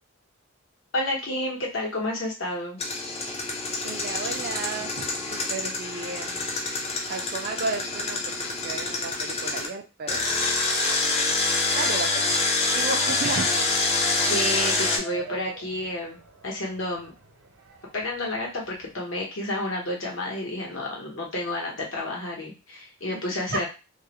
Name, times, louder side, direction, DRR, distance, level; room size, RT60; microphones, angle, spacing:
voice 1, 0.9-2.8 14.2-17.1 17.9-23.7, left 1 dB, 70° left, -2 dB, 0.9 m, -30 dB
Engine, 2.8-9.7 10.1-15.0, left 3 dB, 30° left, 0.4 m, -26 dB
voice 2, 3.8-6.4 7.1-10.2 11.7-12.4 12.7-13.6, right 4 dB, 45° right, 4 dB, 0.4 m, -33 dB
sound 1, 13.1-18.9, right 2 dB, 85° right, 0.7 m, -43 dB
2.3 x 2.0 x 2.8 m, 0.29 s
head